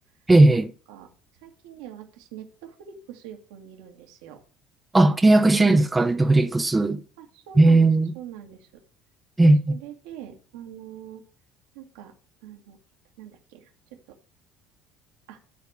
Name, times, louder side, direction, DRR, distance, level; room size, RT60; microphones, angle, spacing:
voice 1, 0.3-0.7 4.9-7.0 7.6-8.1 9.4-9.8, right 2 dB, 15° right, 0.9 m, -17 dB
voice 2, 1.4-4.4 7.2-7.9 8.1-8.8 9.4-11.3 11.7-12.1 12.4-12.8 13.2-14.2 15.3-15.4, right 10 dB, 70° right, 1.9 m, -43 dB
12.0 x 4.2 x 6.5 m
hypercardioid pair, 60°, 0 cm